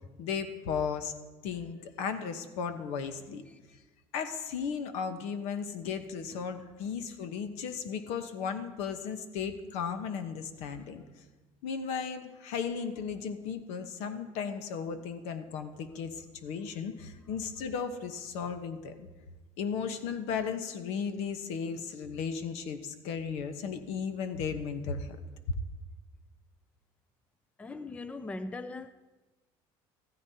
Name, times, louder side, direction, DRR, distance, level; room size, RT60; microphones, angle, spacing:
voice 1, 0.2-1.1 1.4-3.4 4.1-11.0 11.6-19.1 19.6-25.1, left 6 dB, 80° left, 1.0 m, -35 dB
voice 2, 27.6-28.9, left 2 dB, 10° left, 0.4 m, -40 dB
14.5 x 13.5 x 2.8 m
cardioid pair, 140°, 11 cm